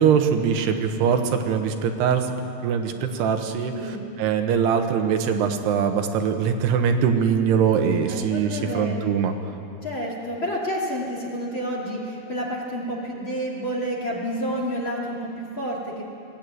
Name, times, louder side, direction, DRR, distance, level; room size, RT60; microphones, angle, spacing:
voice 1, 0.0-2.3 2.6-9.4, right 7 dB, 85° right, 5 dB, 3.2 m, -22 dB
voice 2, 3.7-4.1 8.1-9.1 9.8-16.0, equal, 35° left, -3 dB, 2.5 m, -29 dB
20.5 x 15.0 x 9.4 m, 2.6 s
omnidirectional pair, 4.7 m